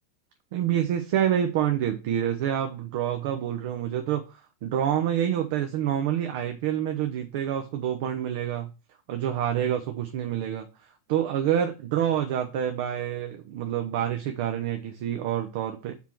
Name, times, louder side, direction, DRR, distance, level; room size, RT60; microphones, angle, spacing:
voice 1, 0.5-8.7 9.1-15.9, right 10 dB, 50° right, 6 dB, 0.8 m, -27 dB
7.2 x 4.5 x 4.5 m, 0.30 s
figure-of-eight pair, 90°, 0 cm